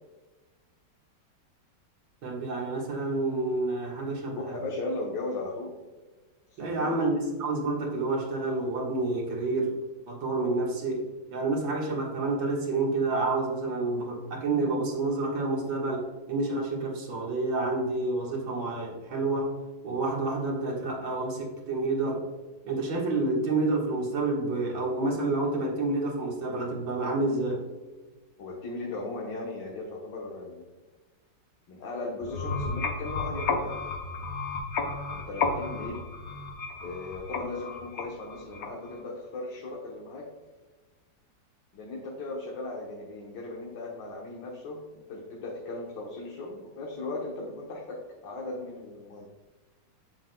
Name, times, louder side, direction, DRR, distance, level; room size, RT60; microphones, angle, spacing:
voice 1, 2.2-4.6 6.6-9.8 10.1-19.5 19.8-22.2 22.6-27.6, right 2 dB, 85° right, -1 dB, 2.3 m, -29 dB
voice 2, 4.3-5.8 6.5-7.0 28.4-30.7 31.7-33.8 35.1-36.0 36.8-40.3 41.7-49.2, left 2 dB, 75° left, -2 dB, 1.8 m, -37 dB
sound 1, 32.2-39.0, left 4 dB, 55° left, 1.2 m, -33 dB
7.7 x 7.3 x 2.2 m, 1.3 s
omnidirectional pair, 2.0 m